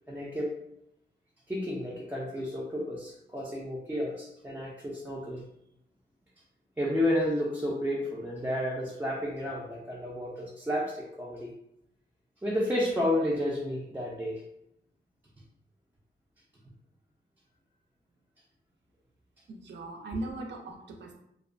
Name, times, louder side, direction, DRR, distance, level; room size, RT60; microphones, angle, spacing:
voice 1, 0.1-0.5 1.5-5.4 6.8-11.5 12.4-14.4, left 1 dB, 10° right, -5 dB, 0.3 m, -31 dB
voice 2, 19.5-21.1, right 2 dB, 70° right, 2 dB, 0.5 m, -39 dB
2.5 x 2.1 x 2.5 m, 0.79 s
wide cardioid pair, 135°, 19 cm